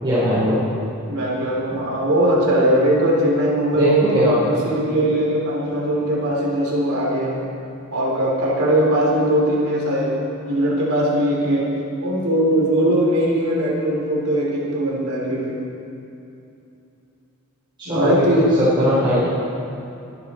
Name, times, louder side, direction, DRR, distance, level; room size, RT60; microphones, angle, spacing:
voice 1, 0.0-0.6 3.7-4.6 17.8-18.3 18.8-19.3, equal, 20° right, -12 dB, 3.7 m, -19 dB
voice 2, 1.1-7.5 7.9-11.7 12.0-15.6 17.9-18.6, right 1 dB, 75° right, -3 dB, 3.5 m, -20 dB
23.0 x 9.8 x 4.4 m, 2.7 s
head